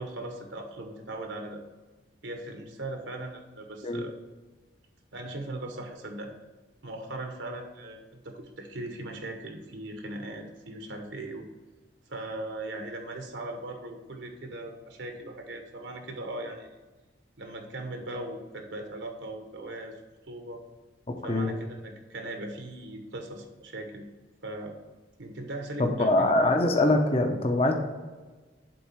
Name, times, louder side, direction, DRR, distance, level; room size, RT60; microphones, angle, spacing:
voice 1, 0.0-1.6 2.2-4.1 5.1-6.3 6.8-11.5 12.1-16.7 17.4-20.0 20.3-20.6 21.2-24.1 24.4-24.7 25.2-26.3, right 2 dB, 70° right, 4 dB, 1.0 m, -39 dB
voice 2, 25.8-27.7, left 2 dB, 30° left, 3 dB, 0.8 m, -23 dB
7.9 x 3.8 x 5.7 m, 1.3 s
head